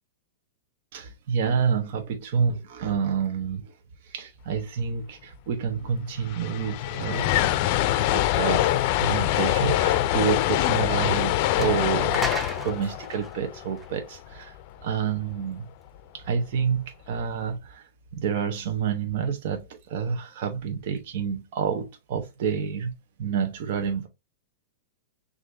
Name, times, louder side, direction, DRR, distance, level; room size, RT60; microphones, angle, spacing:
voice 1, 0.9-3.7 4.0-7.5 7.9-8.7 9.0-12.2 12.6-15.7 16.1-22.9 23.2-24.1, right 6 dB, 60° right, 0.8 m, -28 dB
sound 1, 5.8-5.9 6.0-14.3, left 13 dB, 50° left, 0.4 m, -24 dB
sound 2, 11.0-11.1 11.6-14.4, right 1 dB, 5° right, 0.7 m, -35 dB
6.2 x 2.5 x 2.6 m
hypercardioid pair, 130°, 0 cm